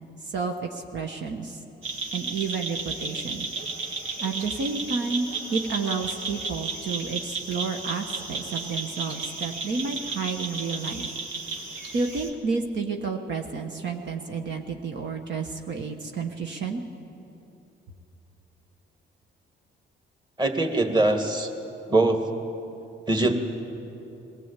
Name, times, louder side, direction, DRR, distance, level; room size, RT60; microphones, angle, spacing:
voice 1, 0.3-1.6 2.1-3.5 4.2-11.1 11.9-16.8, right 4 dB, 65° right, 3 dB, 1.3 m, -30 dB
sound 1, 1.8-12.3, right 3 dB, 80° right, 1.9 m, -33 dB
voice 2, 20.4-21.5 21.9-22.2 23.1-23.3, right 2 dB, 20° right, 5 dB, 2.0 m, -22 dB
21.5 x 15.5 x 8.2 m, 2.9 s
cardioid pair, 90°, 20 cm